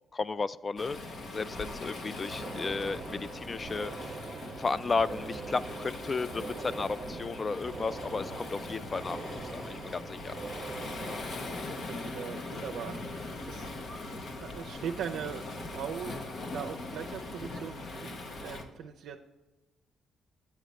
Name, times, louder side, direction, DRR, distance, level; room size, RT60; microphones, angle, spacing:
voice 1, 0.1-4.2 4.6-10.3, left 4 dB, 35° left, 17 dB, 0.3 m, -34 dB
Waves surf, 0.8-18.6, left 2 dB, 50° left, 1.1 m, -41 dB
sound 1, 2.3-11.2, right 4 dB, 40° right, 0.6 m, -43 dB
voice 2, 11.4-19.2, right 8 dB, 80° right, 1 dB, 0.5 m, -41 dB
8.3 x 8.1 x 3.1 m, 1.1 s
cardioid pair, 90°, 0 cm